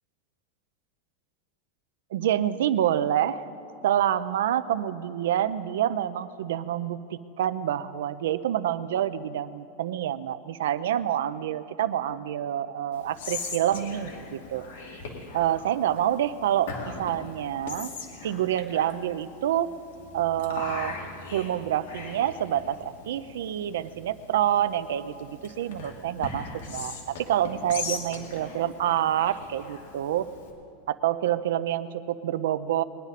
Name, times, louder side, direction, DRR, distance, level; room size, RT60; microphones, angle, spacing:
voice 1, 2.1-3.4 3.8-14.7 15.3-17.9 18.2-19.8 20.1-21.0 21.3-30.3 30.9-32.8, right 11 dB, 85° right, 14 dB, 0.5 m, -27 dB
Whispering, 12.9-30.5, left 4 dB, 70° left, 2.1 m, -40 dB
20.5 x 10.5 x 4.1 m, 2.6 s
supercardioid pair, 180°, 0 cm